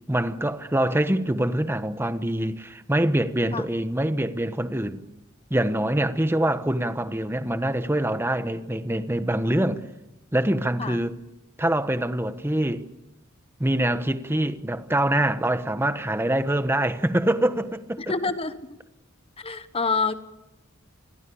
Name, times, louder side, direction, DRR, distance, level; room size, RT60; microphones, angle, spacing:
voice 1, 0.1-5.0 5.5-9.8 10.3-11.2 11.6-12.8 13.6-18.1, right 1 dB, 10° right, 1.1 m, -24 dB
voice 2, 18.0-18.8 19.4-20.1, left 4 dB, 30° left, 1.1 m, -27 dB
28.0 x 21.5 x 7.1 m
head